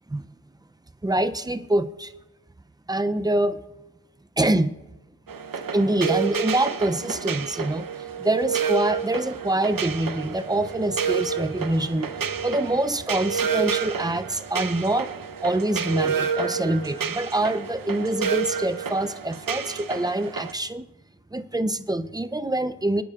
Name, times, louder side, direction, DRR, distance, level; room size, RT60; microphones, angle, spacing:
voice 1, 1.0-2.1 2.9-3.6 4.4-4.7 5.7-7.9 8.2-12.1 12.4-15.1 15.4-20.9 21.3-23.0, right 1 dB, 10° right, 11 dB, 0.5 m, -25 dB
sound 1, 5.3-20.5, right 6 dB, 50° right, 0.8 m, -29 dB
23.0 x 9.9 x 2.4 m, 1.0 s
cardioid pair, 60°, 45 cm